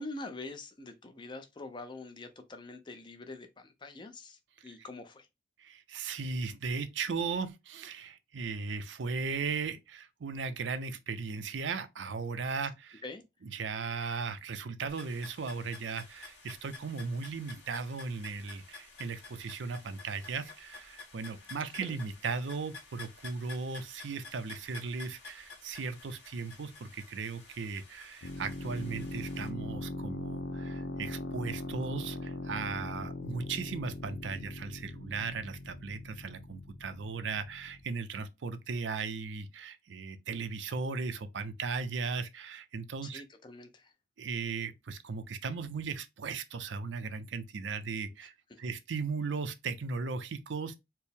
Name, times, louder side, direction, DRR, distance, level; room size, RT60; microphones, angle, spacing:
voice 1, 0.0-5.3 12.6-12.7 13.0-13.2 21.7-22.0 43.0-43.9 48.2-48.6, left 2 dB, 25° left, 0.5 m, -45 dB
voice 2, 5.6-13.0 13.5-43.2 44.2-48.3 48.6-50.7, right 4 dB, 75° right, 0.5 m, -37 dB
sound 1, 14.9-29.5, left 3 dB, 60° left, 1.9 m, -51 dB
sound 2, 28.2-37.8, left 1 dB, 85° left, 0.6 m, -40 dB
4.4 x 2.0 x 3.4 m
head